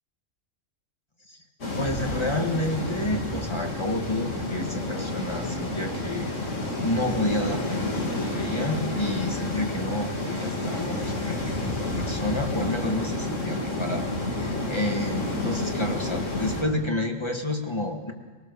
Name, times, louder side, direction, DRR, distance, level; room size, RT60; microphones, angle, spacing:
sound 1, 1.6-16.6, left 2 dB, 85° left, 2.9 m, -30 dB
voice 1, 1.8-6.3 6.8-14.1 14.3-18.1, left 1 dB, 25° left, 3 dB, 1.7 m, -30 dB
21.5 x 18.5 x 6.8 m, 1.3 s
omnidirectional pair, 1.3 m